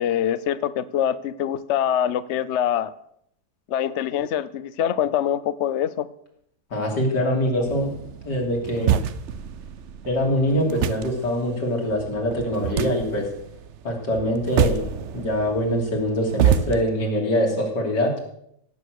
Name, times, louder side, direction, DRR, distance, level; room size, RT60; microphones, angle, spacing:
voice 1, 0.0-2.9 3.7-6.1, left 10 dB, 60° left, 15 dB, 0.8 m, -24 dB
voice 2, 6.7-7.9 8.2-9.0 10.1-13.3 13.8-18.2, equal, 80° left, 0 dB, 3.8 m, -24 dB
sound 1, 7.7-16.8, right 9 dB, 60° right, 0.8 m, -27 dB
17.0 x 8.8 x 6.5 m, 0.72 s
omnidirectional pair, 1.8 m